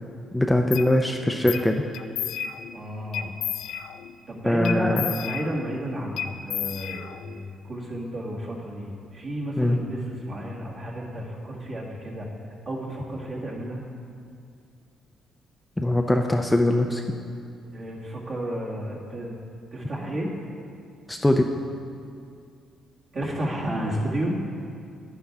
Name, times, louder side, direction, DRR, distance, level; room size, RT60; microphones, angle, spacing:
voice 1, 0.3-1.8 4.4-5.0 9.6-9.8 15.8-17.0 21.1-21.4, left 1 dB, 10° left, 3 dB, 0.5 m, -21 dB
sound 1, 0.7-0.9 1.5-1.7 1.9-2.8 3.1-4.1 4.6-5.8 6.2-7.4, left 9 dB, 80° left, 0.4 m, -32 dB
voice 2, 2.7-3.3 4.3-12.3 12.7-13.8 17.7-19.4 19.7-20.3 23.1-24.4, right 1 dB, 50° right, -5 dB, 2.0 m, -32 dB
10.5 x 9.6 x 3.6 m, 2.3 s
cardioid pair, 90°, 0 cm